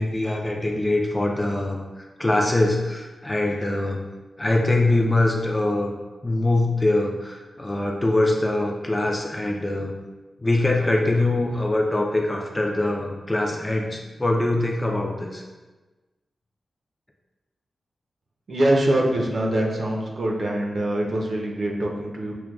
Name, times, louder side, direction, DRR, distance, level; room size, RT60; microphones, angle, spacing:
voice 1, 0.0-4.0 4.4-5.9 6.2-9.9 10.4-15.4, left 2 dB, 15° left, 1 dB, 0.3 m, -23 dB
voice 2, 18.5-22.3, right 1 dB, 55° right, -1 dB, 0.6 m, -23 dB
6.0 x 2.2 x 2.3 m, 1.2 s
wide cardioid pair, 140°, 0 cm